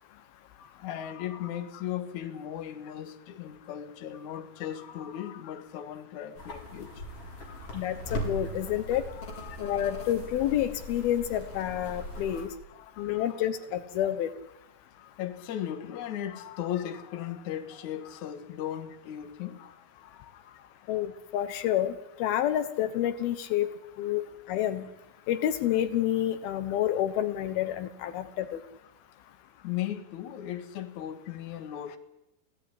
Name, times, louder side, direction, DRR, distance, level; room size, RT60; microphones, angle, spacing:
voice 1, 0.6-7.0 7.5-7.7 9.2-10.1 12.3-13.4 15.0-20.7 29.6-32.0, left 11 dB, 55° left, 2.8 m, -38 dB
sound 1, 6.4-12.5, equal, 40° left, 5.4 m, -39 dB
voice 2, 7.7-9.0 9.6-12.5 13.0-14.3 20.9-21.9 22.2-23.7 24.0-24.9 25.3-28.6, left 11 dB, 80° left, 3.0 m, -29 dB
26.5 x 17.0 x 10.0 m
omnidirectional pair, 4.4 m